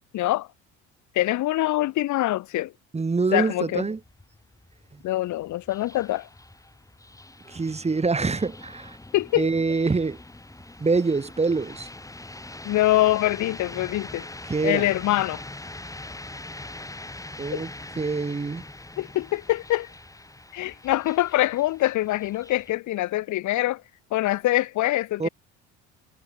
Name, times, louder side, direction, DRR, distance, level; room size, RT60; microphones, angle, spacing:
voice 1, 0.1-0.5 1.1-2.7 3.3-3.9 5.0-6.3 9.1-9.5 12.6-14.3 14.6-15.4 17.5-17.6 19.0-19.9 20.5-23.8 24.1-25.3, left 16 dB, 65° left, 3.1 m, -24 dB
voice 2, 2.9-4.0 4.9-5.0 7.5-9.0 9.4-10.2 10.8-11.9 14.5-14.9 17.4-17.7 18.0-18.6 25.2-25.3, right 4 dB, 20° right, 2.5 m, -25 dB
sound 1, 4.0-22.7, left 2 dB, 10° left, 6.1 m, -43 dB
supercardioid pair, 90°, 31 cm